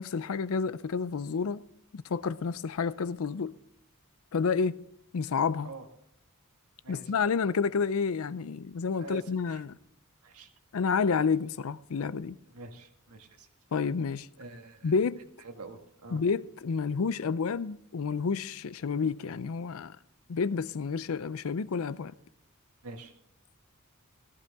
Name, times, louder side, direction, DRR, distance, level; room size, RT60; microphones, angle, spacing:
voice 1, 0.0-1.6 1.9-3.5 4.3-4.8 5.1-5.7 6.9-9.8 10.7-12.4 13.7-14.3 14.8-15.2 16.1-20.0 20.3-22.1, left 5 dB, 65° left, 0.5 m, -29 dB
voice 2, 9.0-9.6 10.2-10.5 12.5-13.5 14.4-14.9 15.4-16.2 22.8-23.1, right 3 dB, 85° right, 1.7 m, -46 dB
15.0 x 14.5 x 3.6 m
head